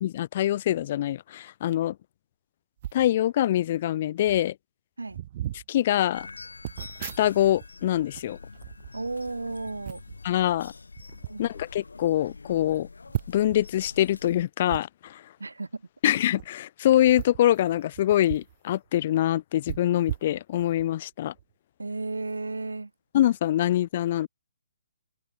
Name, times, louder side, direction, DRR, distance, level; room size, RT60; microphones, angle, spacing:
voice 1, 0.0-2.0 2.9-4.6 5.7-6.3 7.0-8.4 10.2-10.7 11.4-12.9 13.3-15.2 16.0-21.3 23.1-24.3, left 12 dB, 40° left, 0.4 m, -24 dB
sound 1, 2.8-3.1 3.9-4.0 4.2-4.5 5.1-5.7 6.6-7.7 8.0-9.4 9.8-10.2 11.0-11.3 11.9-12.0 12.2-12.3 13.1-13.6 14.7-14.8 16.3-16.5 17.0-18.6 18.9-19.0 19.7-20.9 21.4-21.5, right 13 dB, 40° right, 0.8 m, -37 dB
sound 2, 6.1-14.4, left 4 dB, 75° left, 5.7 m, -46 dB
voice 2, 8.9-10.0 11.3-11.5 15.4-15.9 21.8-22.9, right 3 dB, 80° right, 1.2 m, -34 dB
open air
figure-of-eight pair, 135°, 0 cm